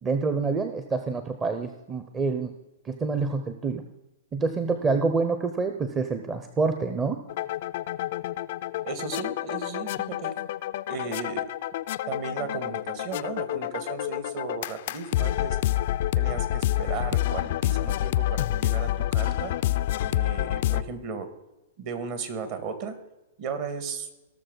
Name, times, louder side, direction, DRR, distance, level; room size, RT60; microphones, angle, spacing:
voice 1, 0.0-2.5 2.8-3.8 4.3-7.2, right 4 dB, 20° right, 7 dB, 0.8 m, -27 dB
sound 1, 7.3-20.8, left 14 dB, 55° left, 0.4 m, -28 dB
voice 2, 8.8-10.3 10.9-11.5 12.1-15.6 16.2-19.5 20.0-21.3 21.8-23.0 23.4-24.1, right 5 dB, 50° right, 9 dB, 1.9 m, -35 dB
18.0 x 6.5 x 4.0 m, 1.0 s
hypercardioid pair, 115°, 0 cm